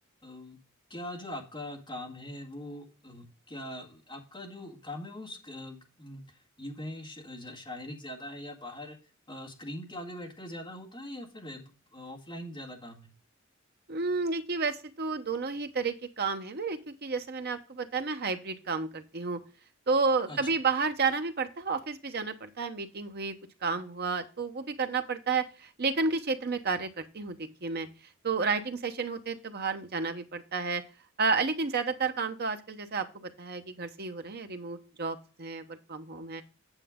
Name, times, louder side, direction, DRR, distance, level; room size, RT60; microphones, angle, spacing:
voice 1, 0.2-0.6 0.9-9.0 9.3-13.1 20.3-20.5, left 1 dB, 20° left, 1 dB, 1.8 m, -42 dB
voice 2, 13.9-19.4 19.9-23.3 23.6-27.9 28.2-30.8 31.2-36.4, right 4 dB, 50° right, 8 dB, 1.0 m, -31 dB
9.0 x 6.8 x 3.7 m, 0.35 s
head